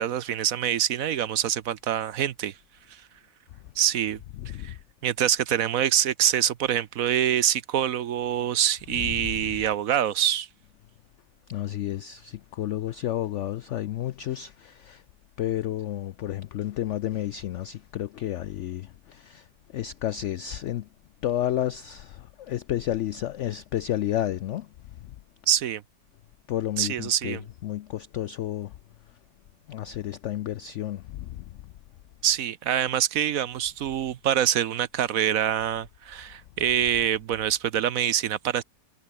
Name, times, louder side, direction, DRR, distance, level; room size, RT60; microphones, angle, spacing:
voice 1, 0.0-2.5 2.9-3.0 3.8-4.2 4.6-4.7 5.0-10.5 25.5-25.8 26.8-27.4 32.2-38.6, right 10 dB, 60° right, 1.1 m, -25 dB
voice 2, 4.4-4.8 8.9-9.3 11.5-15.0 15.4-19.4 19.7-20.9 21.2-24.7 26.5-28.7 29.7-31.4, left 12 dB, 80° left, 0.6 m, -31 dB
omnidirectional pair, 1.8 m